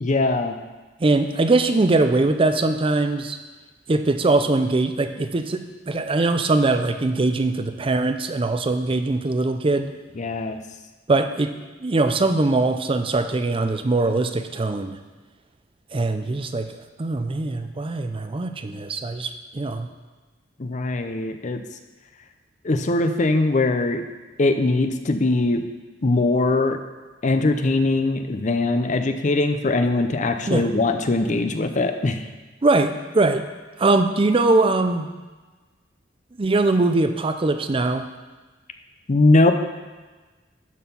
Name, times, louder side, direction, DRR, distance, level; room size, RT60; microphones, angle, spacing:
voice 1, 0.0-0.6 10.2-10.6 20.6-21.6 22.6-24.0 24.4-25.6 26.0-26.8 27.2-32.3 39.1-39.5, left 2 dB, 40° left, 7 dB, 0.6 m, -21 dB
voice 2, 1.0-3.4 3.9-9.9 11.1-11.6 11.8-15.0 15.9-16.7 17.0-19.9 30.5-30.7 32.6-33.4 33.8-35.1 36.4-38.0, right 2 dB, 30° right, 8 dB, 0.5 m, -21 dB
12.0 x 4.4 x 5.4 m, 1.3 s
head